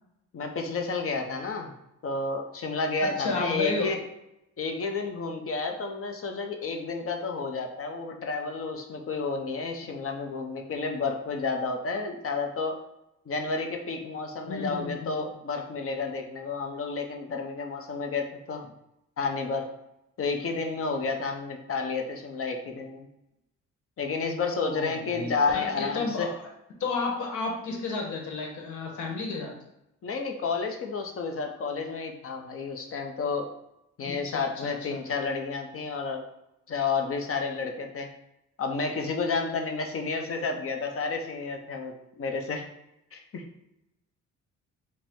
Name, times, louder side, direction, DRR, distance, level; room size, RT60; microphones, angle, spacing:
voice 1, 0.3-1.7 2.0-4.0 4.6-12.8 13.3-18.7 19.2-19.7 20.2-23.1 24.0-26.3 30.0-33.5 34.0-36.2 36.7-38.1 38.6-42.7 43.1-43.4, left 4 dB, 45° left, 4 dB, 0.7 m, -31 dB
voice 2, 3.2-3.9 14.4-15.1 24.6-26.3 26.8-29.5 34.1-35.0, left 3 dB, 75° left, 1 dB, 1.1 m, -32 dB
4.9 x 2.2 x 3.5 m, 0.85 s
cardioid pair, 90°, 30 cm